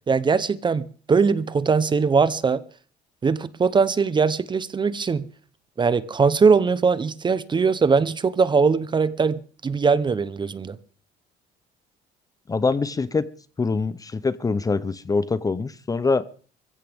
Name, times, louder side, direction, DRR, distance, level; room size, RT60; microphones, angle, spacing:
voice 1, 0.1-2.6 3.2-5.3 5.8-10.8, right 5 dB, 25° right, 0.8 m, -21 dB
voice 2, 12.5-13.2 13.6-16.2, left 4 dB, 20° left, 0.7 m, -24 dB
22.0 x 16.0 x 3.6 m
cardioid pair, 110°, 17 cm